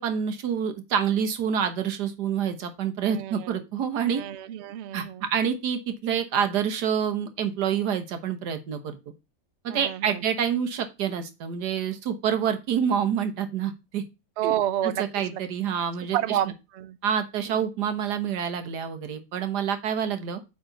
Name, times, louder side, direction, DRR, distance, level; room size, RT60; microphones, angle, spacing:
voice 1, 0.0-4.2 4.9-9.0 9.6-14.0 14.4-14.5 14.8-16.4 17.0-20.4, right 8 dB, 80° right, 1.7 m, -27 dB
voice 2, 3.0-3.6 4.1-5.3 9.7-10.2 14.4-15.0 15.3-15.4 16.1-17.0 17.5-17.7, right 12 dB, 65° right, 0.7 m, -30 dB
8.5 x 3.9 x 3.9 m
omnidirectional pair, 1.7 m